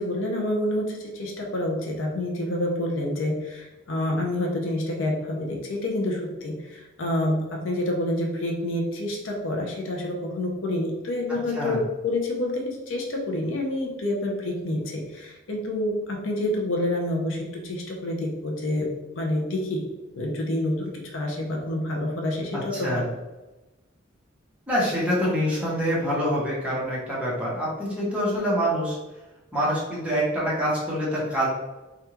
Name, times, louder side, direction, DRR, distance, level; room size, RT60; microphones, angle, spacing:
voice 1, 0.0-19.9 20.1-23.0, left 1 dB, 70° left, 0 dB, 0.6 m, -28 dB
voice 2, 22.5-23.0 24.7-29.0 29.5-31.5, equal, 5° right, -7 dB, 1.0 m, -25 dB
3.4 x 2.4 x 2.9 m, 1.1 s
head